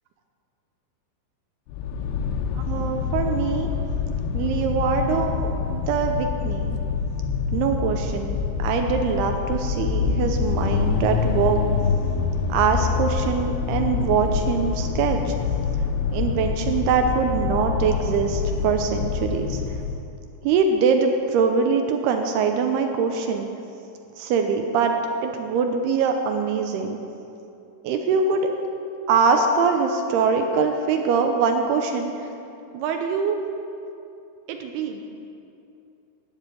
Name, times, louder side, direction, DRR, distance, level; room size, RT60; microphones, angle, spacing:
sound 1, 1.7-20.0, left 6 dB, 80° left, 2.7 m, -26 dB
voice 1, 2.6-3.7 4.3-6.8 7.5-11.6 12.5-15.3 16.1-19.6 20.4-23.5 24.2-25.0 25.2-27.0 27.8-28.5 29.1-32.1 32.7-33.4 34.5-35.1, right 5 dB, 85° right, 4 dB, 2.3 m, -23 dB
13.0 x 7.2 x 9.3 m, 2.7 s
omnidirectional pair, 5.5 m